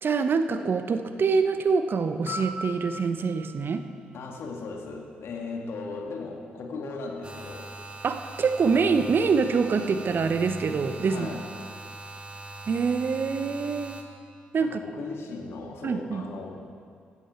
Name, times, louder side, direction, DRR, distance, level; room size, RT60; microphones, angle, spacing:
voice 1, 0.0-3.8 8.0-11.3 12.7-14.0 14.5-14.8 15.8-16.2, right 5 dB, 50° right, 9 dB, 0.9 m, -25 dB
Piano, 2.3-5.2 13.3-13.5, left 2 dB, 80° left, 2.9 m, -41 dB
voice 2, 4.1-7.7 11.0-11.4 14.6-16.7, left 3 dB, 60° left, 1 dB, 2.2 m, -37 dB
sound 1, 7.2-14.0, right 2 dB, 25° right, 1.9 m, -41 dB
15.5 x 13.0 x 4.5 m, 2.2 s
hypercardioid pair, 40°, 5 cm